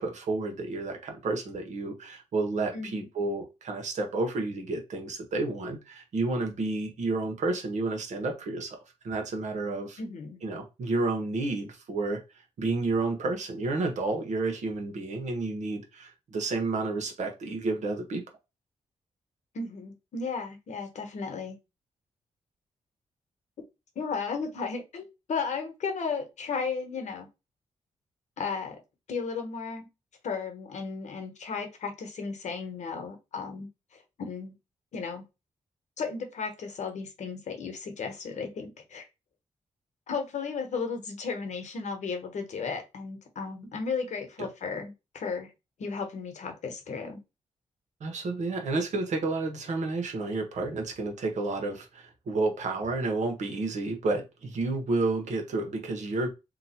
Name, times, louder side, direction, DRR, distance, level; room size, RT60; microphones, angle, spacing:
voice 1, 0.0-8.8 9.0-10.0 10.4-12.2 12.6-18.2 44.4-44.5 48.0-56.3, right 3 dB, 70° right, 1.1 m, -30 dB
voice 2, 2.7-3.1 10.0-10.4 19.5-21.6 23.9-27.3 28.4-28.8 29.1-29.9 30.2-34.5 34.9-35.2 36.0-39.1 40.1-45.5 45.8-47.2, left 5 dB, 70° left, 1.0 m, -34 dB
2.9 x 2.3 x 4.2 m
cardioid pair, 90°, 12 cm